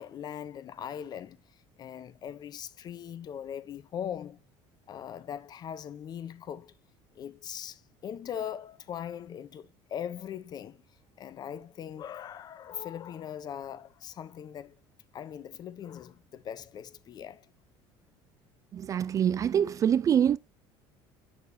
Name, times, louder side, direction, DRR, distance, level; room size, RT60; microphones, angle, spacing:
voice 1, 0.0-1.4 1.8-4.4 4.9-6.7 7.2-10.8 11.2-14.8 15.1-17.5, left 9 dB, 35° left, 0.7 m, -40 dB
voice 2, 18.7-20.4, right 9 dB, 30° right, 0.4 m, -25 dB
8.5 x 6.4 x 2.7 m
cardioid pair, 140°, 11 cm